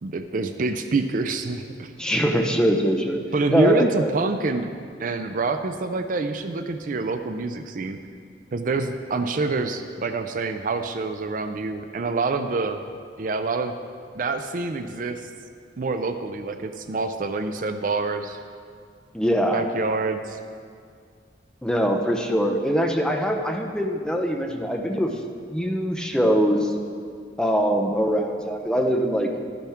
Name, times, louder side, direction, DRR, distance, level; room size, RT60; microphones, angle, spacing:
voice 1, 0.0-1.9 3.3-4.7 5.0-8.0 8.5-12.8 13.2-13.8 14.1-15.3 15.8-18.4 19.5-20.4, right 3 dB, 50° right, 8 dB, 0.4 m, -26 dB
voice 2, 2.0-3.2 3.5-4.1 19.1-19.6 21.6-25.1 25.5-26.7 27.4-29.3, equal, 5° left, 3 dB, 0.7 m, -22 dB
12.0 x 10.0 x 3.5 m, 2.2 s
head